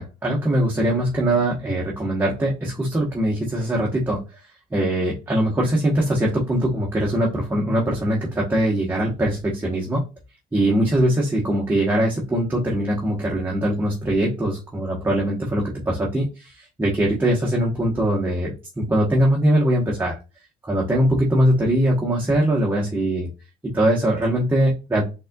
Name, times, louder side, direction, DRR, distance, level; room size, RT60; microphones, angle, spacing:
voice 1, 0.0-4.4 4.7-10.1 10.5-20.2 20.6-23.3 23.6-25.0, right 1 dB, 10° right, -4 dB, 1.0 m, -21 dB
4.0 x 3.6 x 2.3 m, 0.29 s
cardioid pair, 110°, 17 cm